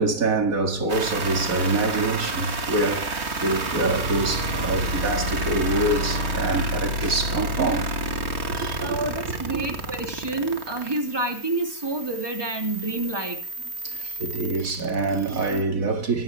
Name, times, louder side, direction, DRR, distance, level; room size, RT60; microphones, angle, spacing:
voice 1, 0.0-7.9 8.5-9.0 9.5-9.6 13.8-16.2, right 2 dB, 75° right, 2.5 m, -25 dB
sound 1, 0.9-15.6, right 1 dB, 50° right, 2.1 m, -30 dB
voice 2, 8.8-13.4, right 2 dB, 15° right, 3.2 m, -28 dB
24.0 x 12.5 x 3.5 m
omnidirectional pair, 1.5 m